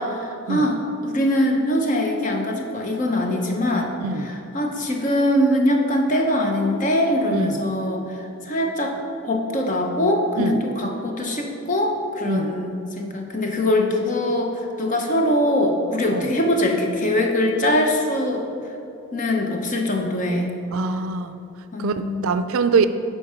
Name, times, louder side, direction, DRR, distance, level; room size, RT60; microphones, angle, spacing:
voice 1, 0.0-3.9 4.2-9.0 9.2-18.4 19.1-20.5 21.7-22.2, left 1 dB, 35° left, 2 dB, 0.8 m, -22 dB
voice 2, 12.3-12.6 16.1-16.3 20.7-21.3 21.8-22.9, right 5 dB, 75° right, 11 dB, 0.4 m, -23 dB
10.5 x 4.6 x 4.4 m, 2.7 s
head